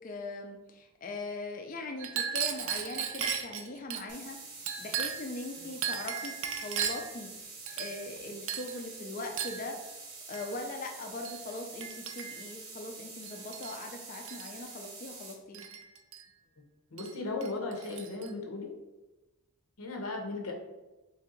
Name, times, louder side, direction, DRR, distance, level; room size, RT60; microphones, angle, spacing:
voice 1, 0.0-15.7, left 2 dB, 40° left, 3 dB, 0.4 m, -41 dB
Chink clink, 2.0-4.0 4.7-5.3 5.8-7.1 7.7-8.2 8.5-8.8 9.4-9.6 10.3-10.5 11.2-11.4 11.8-12.5 13.2-13.8 14.1-14.5 15.5-16.2 17.0-17.1 17.4-18.3, right 8 dB, 60° right, 0.4 m, -36 dB
sound 1, 4.1-15.3, right 4 dB, 85° right, 0.9 m, -47 dB
voice 2, 16.9-18.7 19.8-20.5, left 3 dB, 85° left, 1 dB, 0.8 m, -36 dB
3.2 x 2.7 x 3.8 m, 1.1 s
head